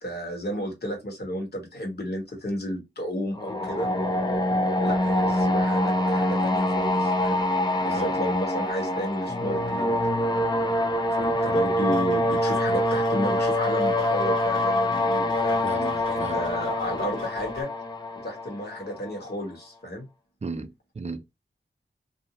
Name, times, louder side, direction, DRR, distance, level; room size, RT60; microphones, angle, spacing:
voice 1, 0.0-3.9 4.8-7.4 7.8-9.9 11.2-15.6 16.1-17.7 18.2-20.1, equal, 55° left, 1.2 m, -32 dB
sound 1, 3.4-19.2, left 1 dB, 20° left, 0.4 m, -25 dB
sound 2, 11.2-17.6, left 1 dB, 90° left, 1.1 m, -42 dB
voice 2, 15.6-16.4 20.4-21.2, right 4 dB, 35° right, 0.4 m, -35 dB
2.6 x 2.0 x 2.8 m
wide cardioid pair, 75°, 20 cm